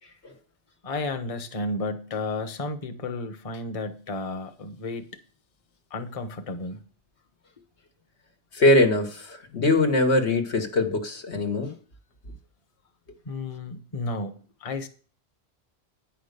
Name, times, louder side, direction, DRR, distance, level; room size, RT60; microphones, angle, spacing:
voice 1, 0.8-5.1 5.9-6.8 13.2-14.9, left 2 dB, 35° left, 0.9 m, -32 dB
voice 2, 8.5-11.7, left 2 dB, 80° left, 1.6 m, -22 dB
9.4 x 5.7 x 6.6 m
omnidirectional pair, 1.1 m